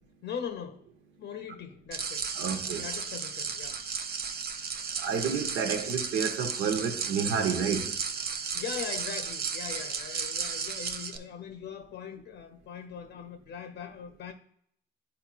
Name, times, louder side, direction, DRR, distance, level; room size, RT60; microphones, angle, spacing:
voice 1, 0.2-0.9 1.2-2.3 2.8-3.8 8.5-14.3, left 7 dB, 60° left, 0.6 m, -40 dB
sound 1, 1.9-11.2, right 6 dB, 50° right, 0.6 m, -34 dB
voice 2, 2.3-2.8 5.0-7.9, right 6 dB, 80° right, 1.0 m, -30 dB
10.0 x 4.4 x 2.4 m
cardioid pair, 90°, 20 cm